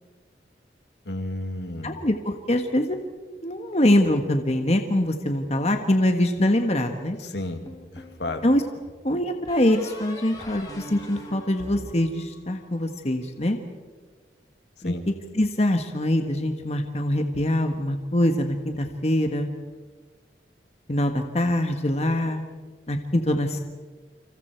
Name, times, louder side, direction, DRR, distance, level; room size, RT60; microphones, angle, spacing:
voice 1, 1.0-2.0 7.2-7.7 7.9-8.4 14.8-15.0, left 2 dB, 80° left, 5 dB, 2.4 m, -32 dB
voice 2, 1.8-3.0 3.4-7.2 8.4-8.6 9.0-13.6 14.8-19.5 20.9-22.4 22.9-23.6, left 1 dB, 35° left, 5 dB, 1.5 m, -24 dB
sound 1, 7.6-8.5 9.5-12.8, left 1 dB, 20° left, 4.3 m, -42 dB
29.0 x 27.0 x 4.6 m, 1.4 s
head